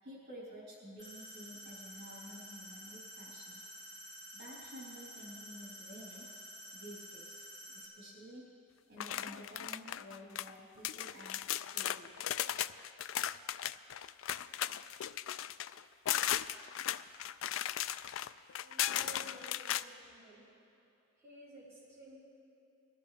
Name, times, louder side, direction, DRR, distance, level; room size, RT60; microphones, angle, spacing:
voice 1, 0.0-3.6 4.3-6.3 6.7-8.5 8.9-12.1, equal, 55° right, -6 dB, 3.6 m, -51 dB
sound 1, 1.0-7.8, equal, 15° left, 3.0 m, -50 dB
sound 2, 9.0-10.5 10.8-19.8, left 11 dB, 85° left, 0.3 m, -36 dB
voice 2, 18.6-20.5 21.2-22.2, right 1 dB, 15° right, -10 dB, 3.6 m, -54 dB
21.0 x 13.5 x 3.4 m, 2.9 s
head